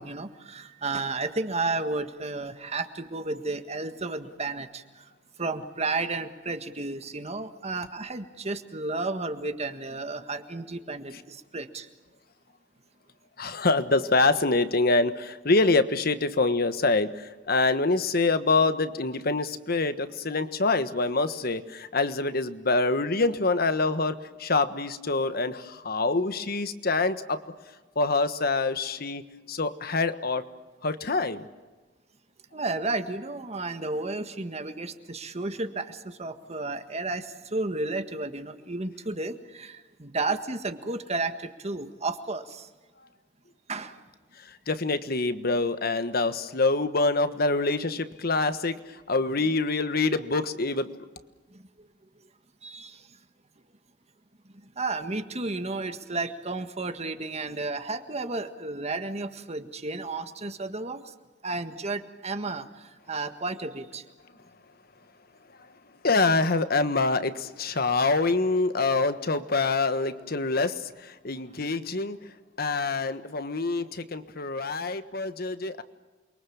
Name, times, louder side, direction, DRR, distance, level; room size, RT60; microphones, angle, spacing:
voice 1, 0.0-5.1 5.4-11.9 32.5-42.7 43.7-44.0 51.5-51.9 52.6-53.2 54.6-61.1 61.4-64.0, right 3 dB, 35° right, 8 dB, 1.7 m, -32 dB
voice 2, 13.4-27.4 27.9-29.2 29.5-30.4 30.8-31.5 44.4-50.9 66.0-72.2 72.6-75.8, left 3 dB, 55° left, 11 dB, 1.4 m, -25 dB
29.0 x 23.0 x 7.2 m, 1.2 s
head